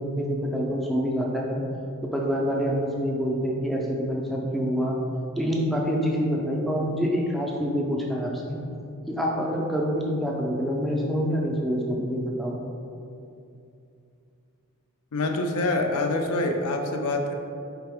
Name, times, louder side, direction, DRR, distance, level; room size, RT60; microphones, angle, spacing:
voice 1, 0.0-1.6 2.1-5.0 5.4-8.6 9.1-12.6, equal, ahead, -2 dB, 0.3 m, -26 dB
voice 2, 15.1-17.3, left 2 dB, 80° left, 4 dB, 0.5 m, -25 dB
4.6 x 3.3 x 3.4 m, 2.6 s
head